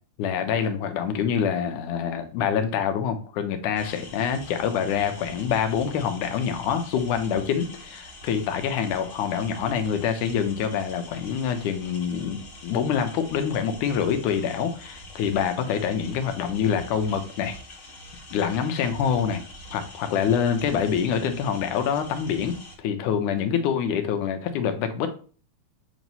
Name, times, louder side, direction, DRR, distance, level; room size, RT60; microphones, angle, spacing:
voice 1, 0.2-17.6 18.3-19.4 19.7-25.1, left 7 dB, 85° left, 7 dB, 2.4 m, -26 dB
sound 1, 3.7-22.8, equal, 35° left, 1.4 m, -44 dB
8.3 x 3.1 x 5.4 m, 0.41 s
omnidirectional pair, 3.5 m